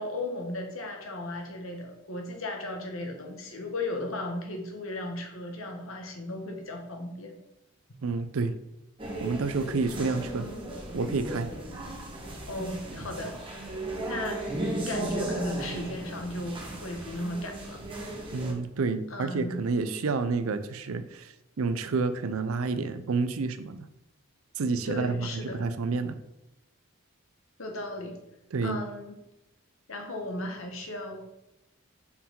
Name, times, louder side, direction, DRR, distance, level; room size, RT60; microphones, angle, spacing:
voice 1, 0.0-7.3 12.5-13.8 14.1-14.5 14.9-17.8 19.1-19.6 24.8-25.6 27.6-28.2 28.6-29.2 29.9-31.2, left 1 dB, 75° left, 3 dB, 1.2 m, -36 dB
voice 2, 8.0-8.6 9.2-10.5 10.9-11.5 18.3-23.9 24.6-26.2 28.5-28.8, right 4 dB, 80° right, 11 dB, 0.5 m, -29 dB
sound 1, 9.0-18.5, right 1 dB, 25° right, 1.1 m, -36 dB
5.6 x 4.6 x 3.7 m, 0.91 s
head